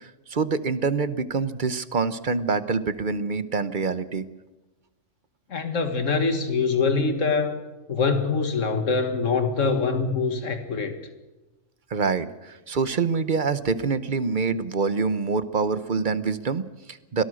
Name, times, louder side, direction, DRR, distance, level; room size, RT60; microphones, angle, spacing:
voice 1, 0.0-4.3 11.9-17.2, right 4 dB, 40° right, 14 dB, 1.1 m, -26 dB
voice 2, 5.5-7.6 7.9-11.0, left 4 dB, 80° left, 8 dB, 2.2 m, -24 dB
25.0 x 18.0 x 6.4 m, 1.1 s
omnidirectional pair, 1.3 m